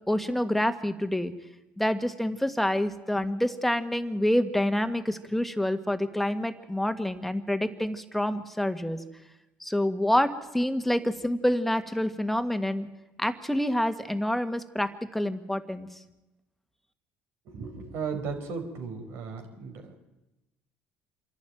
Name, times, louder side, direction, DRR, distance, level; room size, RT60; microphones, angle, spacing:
voice 1, 0.1-1.3 1.8-9.0 9.6-12.9 13.2-15.9, left 1 dB, 5° left, 9 dB, 1.8 m, -27 dB
voice 2, 17.5-20.0, right 5 dB, 70° right, 5 dB, 4.6 m, -36 dB
27.0 x 11.5 x 9.3 m, 1.0 s
supercardioid pair, 90°, 5 cm